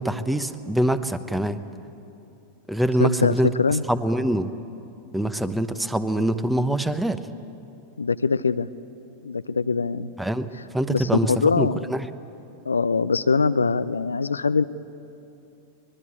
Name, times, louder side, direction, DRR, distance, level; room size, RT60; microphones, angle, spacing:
voice 1, 0.0-1.6 2.7-3.5 3.9-4.5 5.1-7.2 10.2-12.1, right 1 dB, 5° right, 12 dB, 1.0 m, -24 dB
voice 2, 3.0-3.8 8.0-8.7 9.2-10.1 10.9-11.9 12.7-14.6, left 4 dB, 75° left, 14 dB, 0.5 m, -22 dB
24.5 x 21.0 x 8.6 m, 2.8 s
figure-of-eight pair, 90°, 0 cm